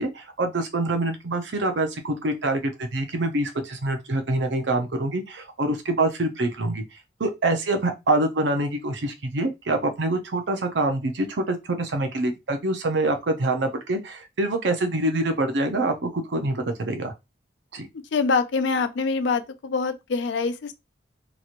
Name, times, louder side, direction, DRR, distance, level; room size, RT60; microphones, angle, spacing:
voice 1, 0.0-6.8 7.2-17.1 17.7-17.9, right 2 dB, 65° right, 0.6 m, -25 dB
voice 2, 17.9-20.7, left 4 dB, 70° left, 0.4 m, -25 dB
3.0 x 2.9 x 2.5 m
head